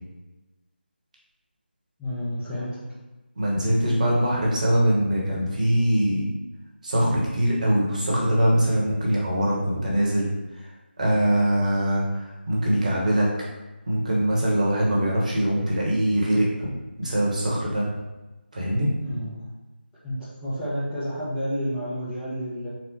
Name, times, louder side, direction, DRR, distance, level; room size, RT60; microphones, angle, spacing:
voice 1, 2.0-2.8 19.0-19.4 20.0-22.7, equal, 5° left, -14 dB, 0.4 m, -30 dB
voice 2, 3.3-6.3 6.8-13.3 13.9-16.7 17.0-17.9 18.5-18.9, right 1 dB, 40° right, -4 dB, 1.1 m, -23 dB
4.2 x 2.0 x 4.4 m, 1.1 s
figure-of-eight pair, 160°, 6 cm